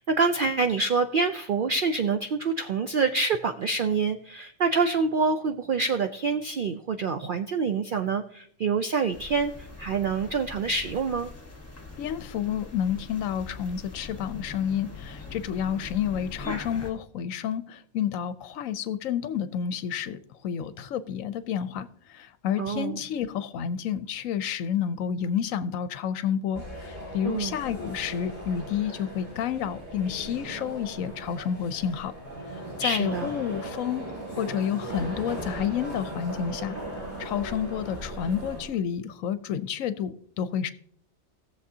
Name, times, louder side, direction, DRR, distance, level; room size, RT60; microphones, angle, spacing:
voice 1, 0.0-11.3 22.6-23.0 27.2-27.6 32.8-33.3, right 4 dB, 65° right, 0.5 m, -26 dB
sound 1, 9.1-16.9, left 2 dB, 10° left, 1.3 m, -42 dB
voice 2, 12.0-32.1 32.5-34.1 34.3-36.8 37.2-40.7, left 8 dB, 75° left, 1.0 m, -30 dB
sound 2, 26.5-38.7, right 1 dB, 25° right, 5.2 m, -38 dB
18.0 x 7.1 x 2.7 m
omnidirectional pair, 1.5 m